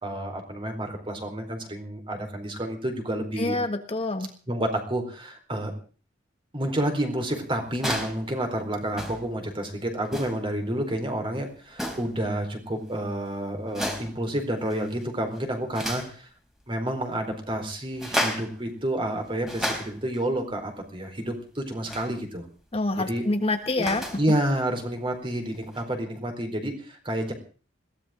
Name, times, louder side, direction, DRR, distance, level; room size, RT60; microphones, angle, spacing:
voice 1, 0.0-3.6 4.5-5.7 6.5-16.3 16.7-22.4 23.0-23.2 23.8-23.9 24.2-27.3, right 1 dB, 30° right, 4 dB, 4.3 m, -29 dB
voice 2, 3.4-4.3 22.7-24.0, left 2 dB, 30° left, 7 dB, 1.4 m, -26 dB
sound 1, 7.7-8.2 8.9-9.3 10.0-10.5 11.7-12.2 13.7-14.2 14.7-15.0 15.3-16.1 17.9-18.6 19.2-20.2 21.9-22.1 23.5-24.3 25.7-25.8, equal, ahead, 3.7 m, -32 dB
21.5 x 17.0 x 3.8 m, 0.39 s
head